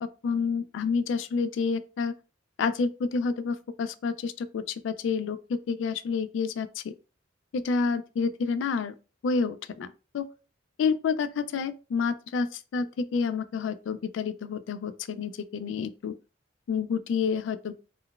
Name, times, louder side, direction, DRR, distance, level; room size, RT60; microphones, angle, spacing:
voice 1, 0.0-2.1 2.6-6.9 7.5-8.9 9.2-9.9 10.1-10.3 10.8-16.1 16.7-17.8, left 5 dB, 75° left, 0.3 m, -29 dB
3.8 x 2.1 x 2.3 m
head